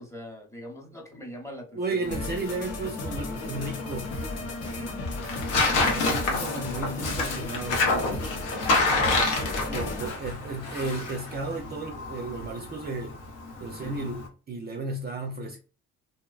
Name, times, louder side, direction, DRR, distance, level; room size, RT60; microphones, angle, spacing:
voice 1, 0.0-2.3 4.6-4.9 13.6-13.8, left 1 dB, 10° left, 0.8 m, -42 dB
voice 2, 1.7-4.1 5.9-7.8 8.9-13.2 13.6-15.6, right 3 dB, 35° right, 0.4 m, -34 dB
Tearing, 2.0-14.3, left 3 dB, 85° left, 0.8 m, -29 dB
sound 1, 2.1-10.1, left 3 dB, 55° left, 0.7 m, -35 dB
2.6 x 2.1 x 2.3 m
cardioid pair, 90°, 30 cm